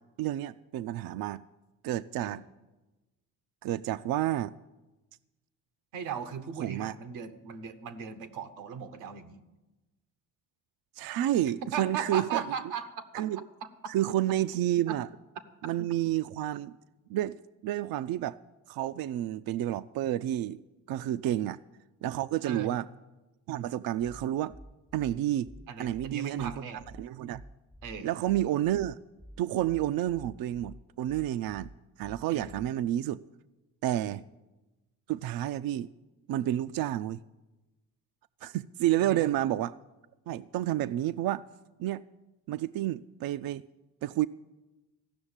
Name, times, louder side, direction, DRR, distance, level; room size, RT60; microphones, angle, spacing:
voice 1, 0.2-1.4 1.8-2.4 3.6-4.5 6.6-6.9 11.0-12.4 13.1-13.4 13.9-15.1 15.6-16.8 17.1-18.4 18.7-20.6 20.9-21.6 22.0-22.8 23.5-24.5 24.9-25.5 25.8-26.5 27.0-27.4 28.0-29.0 29.4-31.7 32.0-33.2 33.8-34.2 35.1-35.9 36.3-37.2 38.4-39.8 40.3-41.4 41.8-42.0 42.5-43.6 44.0-44.3, right 13 dB, 55° right, 0.5 m, -30 dB
voice 2, 5.9-9.4 11.6-13.3 13.6-13.9 14.9-15.0 21.3-21.4 22.4-22.7 25.7-26.8 27.8-28.1 32.3-32.5 33.9-34.2 39.0-39.3, right 7 dB, 90° right, 1.1 m, -38 dB
sound 1, 24.0-33.0, equal, 5° left, 0.3 m, -50 dB
15.0 x 6.3 x 8.8 m
supercardioid pair, 55°, 42 cm